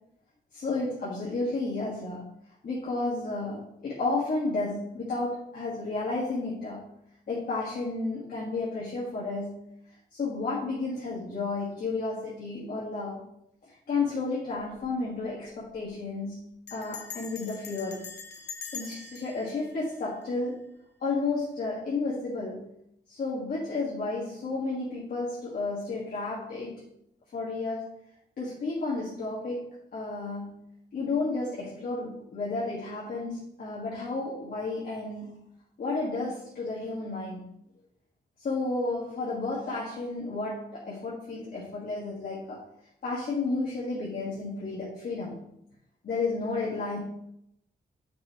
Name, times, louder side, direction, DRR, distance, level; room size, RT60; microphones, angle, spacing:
voice 1, 0.5-2.2 2.6-6.9 7.3-9.6 10.1-13.2 13.7-18.0 18.7-20.6 21.0-22.7 23.1-26.8 27.3-27.9 28.4-29.6 29.9-30.6 30.9-35.4 35.8-37.5 38.4-42.6 43.0-45.4 46.0-47.0, left 3 dB, 55° left, -7 dB, 1.7 m, -32 dB
Bell, 14.5-14.9 15.2-15.3 15.5-15.9 16.7-20.8, left 6 dB, 80° left, 1.0 m, -44 dB
9.8 x 5.6 x 3.0 m, 0.77 s
wide cardioid pair, 175°, 17 cm